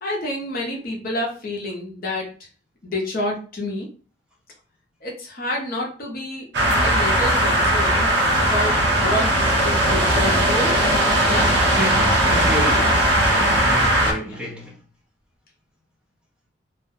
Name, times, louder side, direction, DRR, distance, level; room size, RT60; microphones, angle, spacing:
voice 1, 0.0-2.3 2.8-3.9 5.0-6.5 6.8-9.3 9.6-11.0 11.3-11.5 14.3-14.4, left 1 dB, 50° left, 0.6 m, -28 dB
sound 1, 6.5-14.1, right 1 dB, 60° right, 0.6 m, -18 dB
voice 2, 11.7-14.8, equal, 5° right, 0.6 m, -30 dB
2.3 x 2.0 x 2.6 m
head